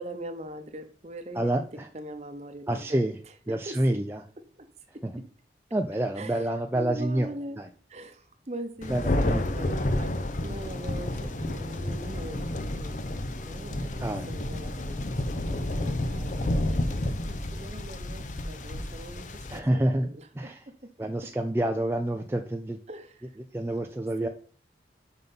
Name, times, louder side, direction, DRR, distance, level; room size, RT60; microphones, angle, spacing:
voice 1, 0.0-3.0 3.5-4.0 4.6-4.7 4.9-5.3 6.2-7.6 7.9-13.0 13.4-20.9 21.2-21.3 22.9-23.3 24.2-24.3, right 1 dB, 35° right, 8 dB, 0.9 m, -42 dB
voice 2, 1.3-1.9 2.7-3.2 3.5-4.2 5.0-5.1 5.7-7.3 7.6-7.7 8.9-9.5 14.0-14.3 19.5-20.1 20.4-20.6 21.0-22.8 23.5-24.3, right 1 dB, 15° right, 4 dB, 0.4 m, -28 dB
Thunder, 8.8-19.6, left 1 dB, 45° left, 0.6 m, -30 dB
5.7 x 5.4 x 5.3 m, 0.44 s
head